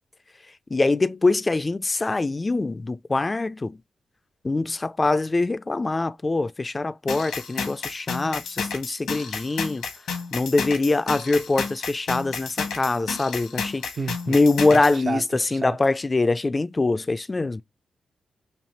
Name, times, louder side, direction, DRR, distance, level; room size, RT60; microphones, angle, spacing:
voice 1, 0.7-3.8 4.4-9.8 10.3-13.9 14.3-17.6, left 3 dB, 35° left, 0.3 m, -23 dB
sound 1, 7.1-15.0, left 5 dB, 85° left, 1.0 m, -31 dB
voice 2, 14.0-14.4 14.7-14.8 15.1-15.8, right 4 dB, 55° right, 0.6 m, -31 dB
3.3 x 2.7 x 4.1 m
supercardioid pair, 40°, 0 cm